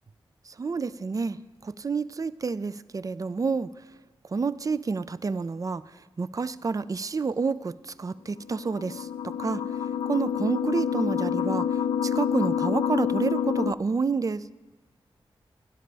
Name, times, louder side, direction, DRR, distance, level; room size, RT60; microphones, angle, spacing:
voice 1, 0.5-1.4 1.6-3.7 4.3-5.8 6.2-9.6 10.1-11.7 12.0-14.4, right 4 dB, 35° right, 15 dB, 0.4 m, -29 dB
sound 1, 8.4-13.7, left 8 dB, 85° left, 0.4 m, -28 dB
17.5 x 11.5 x 3.4 m, 1.3 s
cardioid pair, 70°, 10 cm